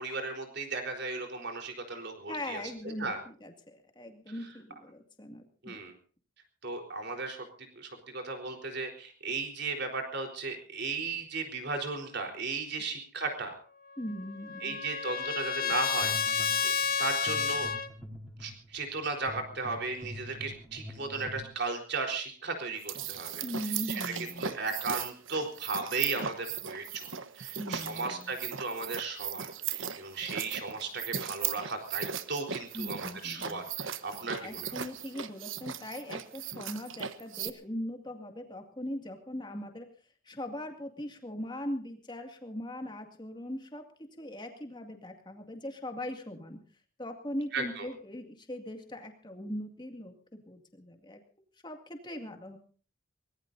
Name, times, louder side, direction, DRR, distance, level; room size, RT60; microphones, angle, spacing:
voice 1, 0.0-2.6 3.0-3.2 5.6-5.9 6.6-7.4 7.8-13.5 14.6-17.7 18.4-23.4 24.2-27.1 27.4-34.7 47.5-47.8, right 3 dB, 55° right, 4 dB, 4.1 m, -36 dB
voice 2, 2.3-5.8 14.0-14.8 23.4-24.4 27.6-28.4 32.7-33.6 34.4-39.9 40.3-43.9 44.2-46.6 47.0-51.2 51.6-52.6, left 1 dB, 20° left, 4 dB, 2.3 m, -40 dB
Trumpet, 14.0-17.9, left 7 dB, 45° left, 1.2 m, -31 dB
sound 1, 16.0-21.5, equal, 5° right, 4.9 m, -45 dB
sound 2, 22.8-37.5, right 8 dB, 70° right, 1.1 m, -38 dB
23.5 x 20.0 x 2.7 m, 0.41 s
head